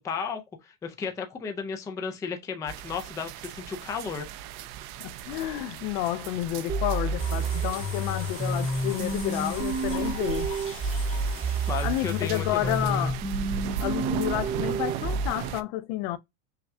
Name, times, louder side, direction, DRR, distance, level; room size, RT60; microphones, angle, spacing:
voice 1, 0.0-4.3 11.7-13.1, left 6 dB, 10° left, 0.3 m, -34 dB
sound 1, 2.7-15.6, right 9 dB, 60° right, 0.5 m, -37 dB
voice 2, 5.0-10.5 11.8-13.2 13.8-16.2, left 15 dB, 60° left, 0.6 m, -30 dB
sound 2, 6.7-15.3, right 2 dB, 20° right, 0.8 m, -30 dB
sound 3, 7.2-12.7, left 7 dB, 30° left, 1.1 m, -42 dB
5.7 x 2.3 x 2.6 m
supercardioid pair, 140°, 41 cm